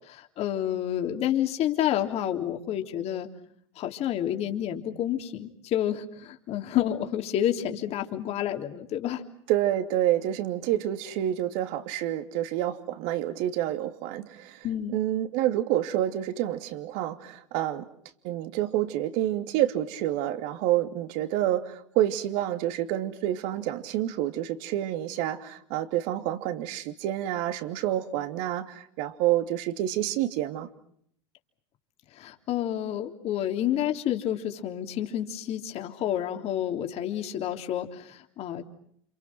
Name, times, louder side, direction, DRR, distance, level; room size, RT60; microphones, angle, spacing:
voice 1, 0.1-3.3 3.8-9.2 14.6-15.0 32.1-38.6, left 11 dB, 45° left, 5 dB, 3.4 m, -29 dB
voice 2, 9.5-14.7 14.9-17.8 18.2-30.7, right 12 dB, 60° right, 9 dB, 2.8 m, -28 dB
30.0 x 27.5 x 6.0 m, 0.68 s
hypercardioid pair, 100°, 15 cm